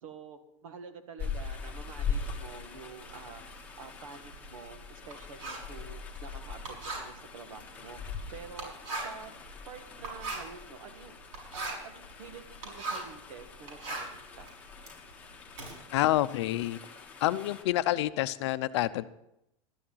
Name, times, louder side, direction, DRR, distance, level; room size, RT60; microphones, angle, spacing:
voice 1, 0.0-3.4 3.8-8.0 8.3-8.7 9.0-9.3 9.6-11.2 11.5-14.5, right 5 dB, 80° right, 7 dB, 1.9 m, -48 dB
sound 1, 1.2-17.6, left 5 dB, 10° left, 1.4 m, -42 dB
Writing, 3.0-13.2 13.5-15.7, right 3 dB, 65° right, 6.4 m, -41 dB
voice 2, 15.9-16.8 17.2-19.0, left 15 dB, 55° left, 13 dB, 0.6 m, -28 dB
13.0 x 10.5 x 5.7 m, 0.82 s
supercardioid pair, 165°, 17 cm